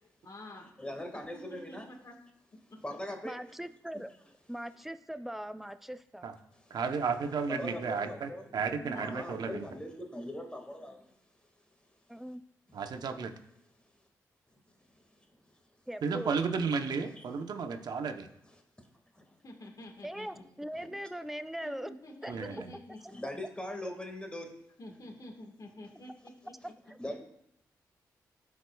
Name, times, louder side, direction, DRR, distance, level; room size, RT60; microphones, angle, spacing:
voice 1, 0.2-0.7 1.1-1.2 1.7-2.1 2.7-2.8 8.8-9.1 19.4-20.4 21.6-23.2 24.8-26.5, left 1 dB, 55° left, 1 dB, 1.6 m, -48 dB
voice 2, 0.8-1.9 2.8-3.4 6.5-6.8 7.5-8.5 8.8-11.1 12.7-12.8 14.8-15.6 17.1-17.3 18.5-18.6 19.1-19.2 20.7-20.9 23.1-24.5 27.0-27.2, left 1 dB, 15° left, 3 dB, 1.8 m, -41 dB
voice 3, 3.2-4.1 4.5-6.3 12.1-12.4 15.9-16.4 20.0-21.9 22.2-23.1 26.6-27.0, equal, 5° right, 11 dB, 0.5 m, -41 dB
voice 4, 6.7-9.7 12.7-13.3 16.0-18.3 22.3-22.7, right 5 dB, 70° right, 7 dB, 0.8 m, -33 dB
13.5 x 4.7 x 2.3 m, 0.77 s
supercardioid pair, 50°, 7 cm